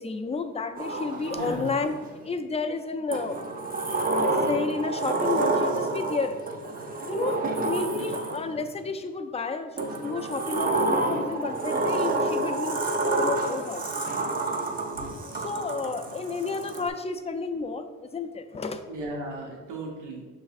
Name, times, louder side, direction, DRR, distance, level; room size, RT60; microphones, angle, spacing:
voice 1, 0.0-1.9 2.2-3.4 4.4-6.4 7.1-9.8 10.0-12.8 13.0-14.0 15.3-18.8, left 4 dB, 20° left, 7 dB, 0.3 m, -31 dB
Sliding door, 0.8-2.1 3.1-8.7 9.8-16.9, right 2 dB, 30° right, 0.6 m, -28 dB
voice 2, 1.3-1.7 8.0-8.1 14.9-15.0 15.3-15.4 18.9-20.2, right 2 dB, 85° right, -2 dB, 0.9 m, -36 dB
6.2 x 3.3 x 2.5 m, 1.3 s
cardioid pair, 90°, 30 cm